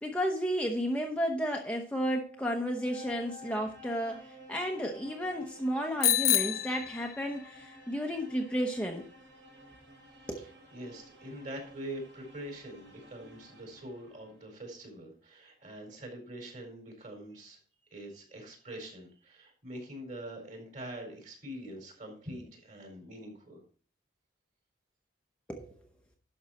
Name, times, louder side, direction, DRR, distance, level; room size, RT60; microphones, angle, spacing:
voice 1, 0.0-9.1 10.3-10.4 25.5-25.7, equal, 5° left, 1 dB, 0.9 m, -32 dB
sound 1, 1.7-14.5, left 1 dB, 85° right, 3.2 m, -53 dB
Bicycle bell, 6.0-7.6, left 12 dB, 50° left, 0.5 m, -28 dB
voice 2, 10.4-17.6 17.9-23.6, right 1 dB, 40° right, 2 dB, 4.3 m, -44 dB
11.5 x 6.2 x 4.2 m, 0.40 s
head